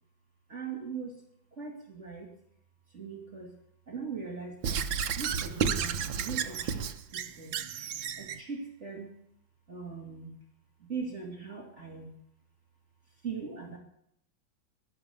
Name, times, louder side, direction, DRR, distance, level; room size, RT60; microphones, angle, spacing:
voice 1, 0.5-1.2 1.5-2.3 2.9-3.5 3.9-4.8 5.2-7.6 8.2-9.1 9.7-10.3 10.8-12.1 13.2-13.8, right 5 dB, 35° right, 0 dB, 3.1 m, -40 dB
Squeak / Writing, 4.6-8.4, right 7 dB, 80° right, 1.7 m, -32 dB
12.5 x 12.0 x 7.1 m, 0.69 s
omnidirectional pair, 2.1 m